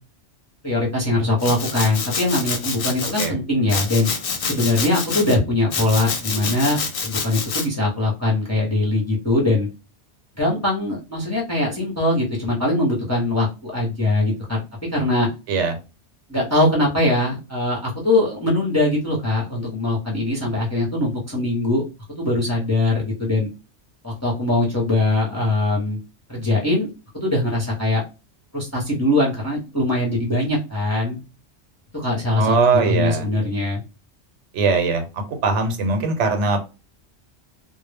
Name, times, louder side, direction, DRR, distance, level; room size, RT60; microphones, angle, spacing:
voice 1, 0.6-4.1 4.4-9.7 10.4-14.6 14.9-15.3 16.3-21.8 22.2-23.5 24.0-26.0 26.3-26.9 27.1-28.0 28.5-31.2 31.9-33.8, left 2 dB, 20° left, -3 dB, 0.6 m, -21 dB
Domestic sounds home sounds, 1.4-3.3 3.7-5.3 5.7-7.7, left 5 dB, 60° left, 0.7 m, -27 dB
voice 2, 32.4-33.3 34.5-36.6, right 4 dB, 80° right, 6 dB, 0.9 m, -20 dB
2.1 x 2.0 x 3.2 m, 0.30 s
omnidirectional pair, 1.2 m